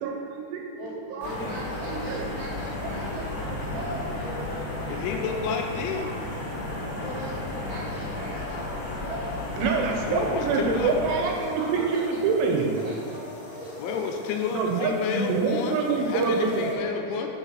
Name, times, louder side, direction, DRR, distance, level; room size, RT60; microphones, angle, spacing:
voice 1, 0.0-0.6 1.1-1.3 1.9-2.3 4.5-4.9 9.6-12.8 14.5-16.7, right 4 dB, 80° right, 1 dB, 3.4 m, -26 dB
voice 2, 0.7-4.4 7.0-9.4 11.3-12.2 12.8-14.8 16.4-17.3, right 1 dB, 60° right, -8 dB, 2.5 m, -40 dB
sound 1, 1.2-16.7, left 1 dB, 65° left, 2.1 m, -43 dB
sound 2, 1.2-11.2, left 2 dB, 45° left, 1.8 m, -33 dB
voice 3, 4.9-6.1 10.1-11.0 11.7-11.8 13.8-17.3, left 6 dB, 85° left, 2 dB, 3.1 m, -30 dB
6.6 x 5.6 x 6.2 m, 2.8 s
omnidirectional pair, 5.6 m